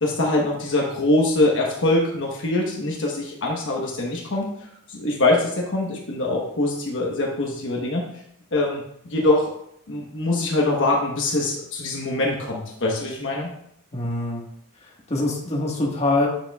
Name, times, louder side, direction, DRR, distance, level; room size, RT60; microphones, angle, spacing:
voice 1, 0.0-8.1 8.5-9.5 9.9-13.5, left 2 dB, 60° left, -2 dB, 1.1 m, -23 dB
voice 2, 13.9-14.4 14.8-16.3, left 2 dB, 30° left, -2 dB, 1.5 m, -24 dB
8.4 x 6.6 x 2.3 m, 0.71 s
head